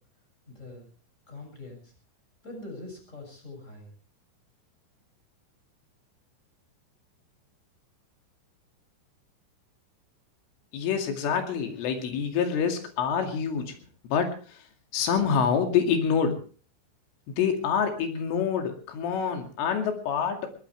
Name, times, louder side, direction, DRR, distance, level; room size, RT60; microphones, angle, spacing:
voice 1, 0.5-0.9 1.3-1.9 2.4-3.9, left 2 dB, 15° left, 3 dB, 7.2 m, -43 dB
voice 2, 10.7-13.8 14.0-14.7 14.9-16.4 17.4-20.5, left 7 dB, 85° left, 4 dB, 4.9 m, -26 dB
21.5 x 19.0 x 3.4 m, 0.38 s
omnidirectional pair, 5.5 m